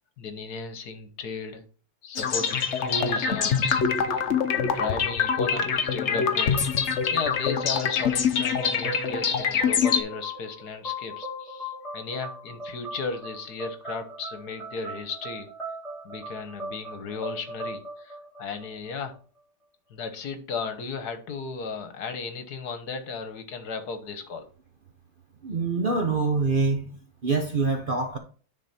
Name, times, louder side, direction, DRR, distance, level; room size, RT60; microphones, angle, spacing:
voice 1, 0.2-1.6 2.0-4.2 4.5-6.7 7.1-15.5 16.0-19.1 19.9-24.5, left 4 dB, 70° left, 1.6 m, -35 dB
sound 1, 2.2-10.0, left 6 dB, 50° left, 1.0 m, -25 dB
sound 2, 8.5-19.1, right 1 dB, ahead, 3.7 m, -39 dB
voice 2, 25.4-26.9 27.2-28.2, right 4 dB, 45° right, 0.7 m, -25 dB
10.0 x 4.4 x 4.2 m
omnidirectional pair, 1.8 m